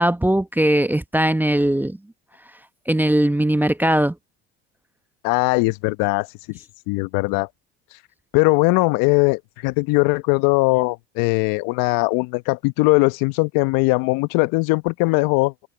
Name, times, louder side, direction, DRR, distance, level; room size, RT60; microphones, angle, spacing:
voice 1, 0.0-2.0 2.9-4.2, right 1 dB, 5° right, 0.9 m, -19 dB
voice 2, 5.2-6.3 6.9-7.5 8.3-15.5, left 25 dB, 65° left, 1.1 m, -20 dB
hypercardioid pair, 75°, 37 cm